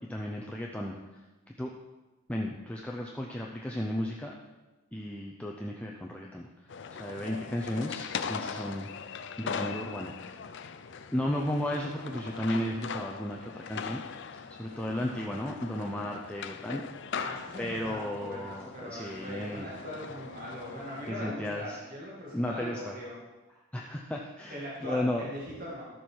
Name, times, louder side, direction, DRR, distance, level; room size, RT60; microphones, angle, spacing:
voice 1, 0.1-1.0 1.6-1.7 2.3-4.3 4.9-6.5 6.9-9.1 9.4-10.4 11.1-14.0 14.5-16.8 17.6-19.7 21.1-21.8 22.3-23.0 23.7-25.3, left 1 dB, 5° left, -1 dB, 0.6 m, -34 dB
sound 1, 6.7-21.1, left 6 dB, 55° left, 0.5 m, -40 dB
voice 2, 17.2-23.2 24.5-25.9, equal, 40° right, -4 dB, 2.1 m, -40 dB
11.5 x 7.2 x 4.7 m, 1.1 s
head